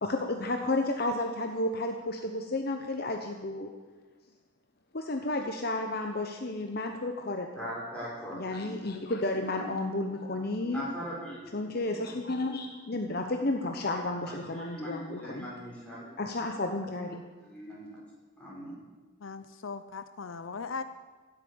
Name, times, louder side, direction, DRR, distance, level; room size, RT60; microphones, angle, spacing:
voice 1, 0.0-3.7 4.9-7.6 8.3-10.8 11.5-15.5 16.2-17.2, left 2 dB, 45° left, 4 dB, 0.9 m, -32 dB
voice 2, 7.6-8.9 9.3-9.7 10.6-12.0 14.2-16.1 17.4-18.0 18.4-18.7, equal, 5° left, -7 dB, 5.7 m, -41 dB
voice 3, 19.2-20.8, left 4 dB, 70° left, 11 dB, 0.6 m, -38 dB
15.5 x 8.4 x 8.6 m, 1.3 s
head